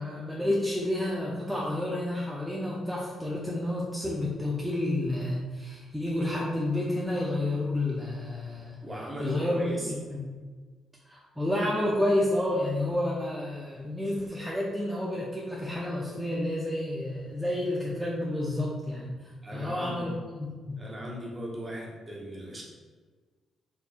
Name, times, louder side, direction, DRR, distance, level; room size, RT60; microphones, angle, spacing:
voice 1, 0.0-8.8 9.2-9.6 9.9-10.2 11.0-20.1 20.4-20.8, left 1 dB, 5° right, -5 dB, 0.6 m, -30 dB
voice 2, 8.8-9.9 19.4-20.2 20.8-22.6, equal, 25° right, -2 dB, 0.9 m, -38 dB
4.4 x 2.6 x 2.5 m, 1.4 s
cardioid pair, 90°, 0 cm